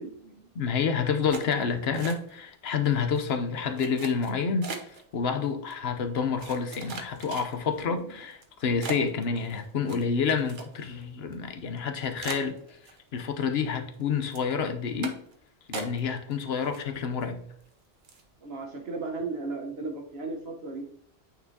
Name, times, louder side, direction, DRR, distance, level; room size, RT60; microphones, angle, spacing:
voice 1, 0.0-0.5 7.7-8.1 18.4-20.8, right 3 dB, 80° right, 1.4 m, -36 dB
voice 2, 0.5-4.7 5.1-12.6 13.1-15.2 15.7-17.4, left 6 dB, 80° left, 1.0 m, -28 dB
sound 1, 1.3-2.5 2.8-3.2 3.8-5.0 5.7-5.8 6.4-7.8 8.3-8.4 8.8-11.0 11.3-11.4 11.8-11.9 12.2-13.3 13.6-14.0 14.3-14.5 15.0-15.3 15.7-16.3 16.6-17.2 17.6-17.7 18.0-18.3, right 4 dB, 55° right, 1.0 m, -40 dB
8.9 x 4.3 x 2.8 m
omnidirectional pair, 1.0 m